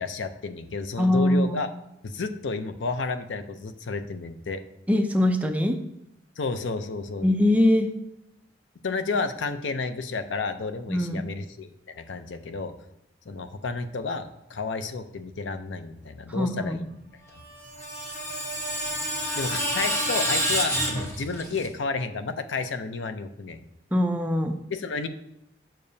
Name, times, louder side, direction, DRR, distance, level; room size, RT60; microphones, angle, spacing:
voice 1, 0.0-1.7 2.0-4.6 6.4-7.3 8.8-11.7 11.9-12.7 13.3-16.9 17.3-17.4 19.4-23.6 24.7-25.1, left 4 dB, 90° left, 9 dB, 0.6 m, -31 dB
voice 2, 1.0-1.6 4.9-5.8 7.2-7.9 10.9-11.3 16.3-16.9 23.9-24.6, left 1 dB, 10° right, 5 dB, 0.4 m, -22 dB
Screech, 17.4-21.7, right 1 dB, 15° left, 1.1 m, -28 dB
7.5 x 6.8 x 2.7 m, 0.84 s
head